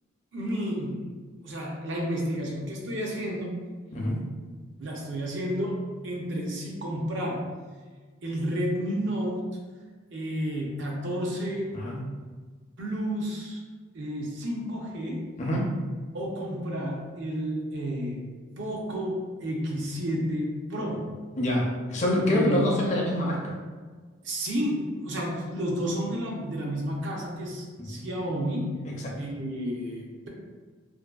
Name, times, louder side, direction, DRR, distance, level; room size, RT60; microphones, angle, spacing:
voice 1, 0.3-1.0 1.4-3.6 4.8-7.5 8.2-9.5 10.1-11.7 12.8-13.6 13.9-15.2 16.1-18.3 18.6-21.1 22.3-22.7 24.2-28.8 29.2-30.3, equal, 65° right, -1 dB, 0.5 m, -31 dB
voice 2, 21.4-23.5 27.9-28.0 28.8-28.9, left 1 dB, 35° left, -3 dB, 0.5 m, -26 dB
2.6 x 2.5 x 2.3 m, 1.4 s
head